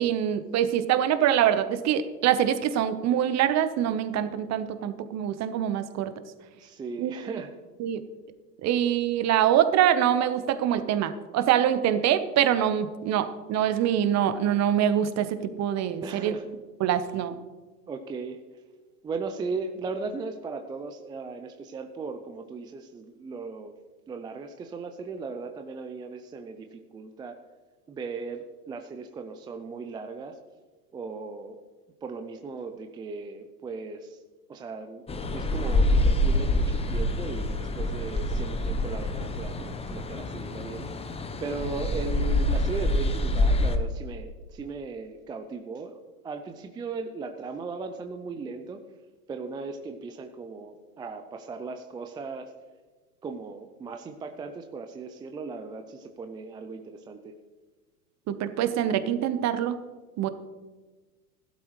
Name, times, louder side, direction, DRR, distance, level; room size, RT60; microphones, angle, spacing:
voice 1, 0.0-6.1 7.0-7.1 7.8-8.0 8.6-16.3 16.8-17.3 58.3-59.8 60.2-60.3, right 10 dB, 35° right, 11 dB, 1.0 m, -24 dB
voice 2, 6.5-7.5 16.0-16.4 17.9-18.6 19.0-23.7 24.1-27.4 27.9-30.4 30.9-31.6 32.0-34.2 34.5-35.0 35.3-48.8 49.3-52.5 53.2-57.3, right 4 dB, 10° right, 6 dB, 0.4 m, -37 dB
sound 1, 35.1-43.8, left 1 dB, 10° left, 0.8 m, -26 dB
15.0 x 12.0 x 3.2 m, 1.3 s
hypercardioid pair, 100°, 48 cm